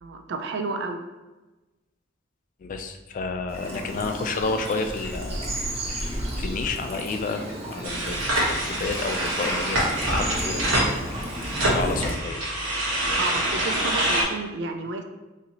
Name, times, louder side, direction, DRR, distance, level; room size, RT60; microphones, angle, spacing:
voice 1, 0.0-1.0 13.2-15.0, right 3 dB, 60° right, 5 dB, 0.4 m, -31 dB
voice 2, 2.6-5.5 5.9-11.2 11.6-12.4, left 3 dB, 45° left, 6 dB, 0.3 m, -31 dB
Bird vocalization bird call bird song / Stream, 3.5-12.1, right 1 dB, 30° right, 0.7 m, -33 dB
sound 1, 7.8-14.2, right 1 dB, 90° right, 1.1 m, -26 dB
4.0 x 2.7 x 2.9 m, 1.1 s
head